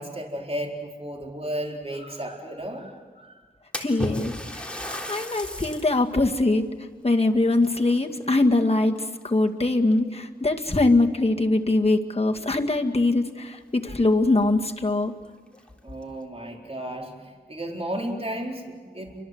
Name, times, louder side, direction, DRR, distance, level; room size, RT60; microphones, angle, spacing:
voice 1, 0.0-2.9 3.2-3.4 15.8-19.2, right 1 dB, 35° right, 1 dB, 4.3 m, -33 dB
Splash splatter, 3.7-6.0 6.5-6.6 7.6-8.6 8.9-9.4 10.2-10.3 10.8-10.9 13.1-13.2 13.5-13.6 14.1-14.2 14.6-14.7 15.5-16.0, left 1 dB, 5° left, 3.5 m, -35 dB
voice 2, 3.8-6.7 7.0-8.9 9.2-15.1, left 2 dB, 35° left, 2 dB, 2.0 m, -22 dB
30.0 x 24.5 x 8.0 m, 1.5 s
wide cardioid pair, 70°, 18 cm